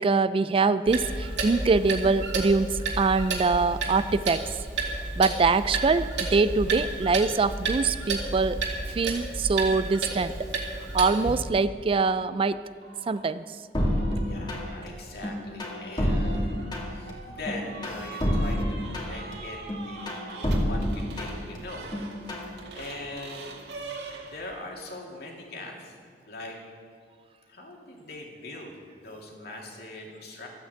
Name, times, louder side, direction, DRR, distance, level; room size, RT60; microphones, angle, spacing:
voice 1, 0.0-4.5 5.2-8.6 8.9-10.5 10.9-12.6 13.1-13.4, right 4 dB, 30° right, 14 dB, 0.3 m, -24 dB
Clock, 0.9-11.4, right 3 dB, 80° right, 2.6 m, -31 dB
sound 1, 12.7-13.3 13.8-24.7, right 3 dB, 65° right, 2.0 m, -44 dB
sound 2, 13.7-14.9 15.2-17.1 17.5-19.3 19.7-21.6 21.9-22.5, equal, 25° left, 2.3 m, -28 dB
voice 2, 14.2-16.5 16.9-18.6 18.9-21.9 22.7-23.5 24.2-26.0 26.3-26.6 27.5-30.5, left 2 dB, 60° left, 0 dB, 2.6 m, -41 dB
13.5 x 9.1 x 8.0 m, 2.2 s
head